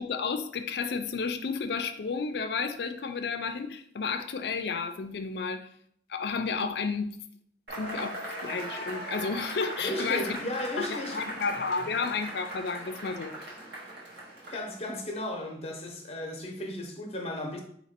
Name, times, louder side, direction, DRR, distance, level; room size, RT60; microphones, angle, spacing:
voice 1, 0.0-5.7 6.1-7.2 7.8-10.4 10.9-13.3, left 5 dB, 65° left, 0.4 m, -32 dB
Cheering / Applause / Crowd, 7.7-14.9, right 1 dB, 60° right, 1.3 m, -39 dB
voice 2, 9.8-11.2 14.5-17.6, left 1 dB, 35° left, 0.8 m, -35 dB
4.1 x 2.8 x 4.3 m
head